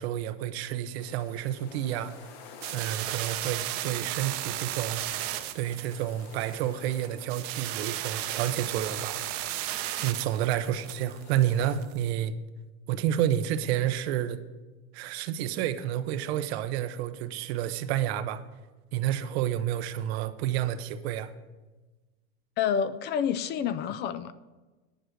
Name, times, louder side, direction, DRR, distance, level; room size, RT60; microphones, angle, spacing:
voice 1, 0.0-2.2 2.7-5.0 5.5-9.2 10.0-12.3 12.9-14.4 14.9-18.4 18.9-21.3, right 11 dB, 75° right, 0.8 m, -30 dB
sound 1, 0.9-11.8, left 6 dB, 70° left, 1.6 m, -52 dB
sound 2, 2.6-12.0, right 13 dB, 45° right, 0.8 m, -35 dB
voice 2, 22.6-24.3, left 8 dB, 35° left, 0.4 m, -28 dB
10.5 x 6.2 x 6.5 m
supercardioid pair, 140°, 32 cm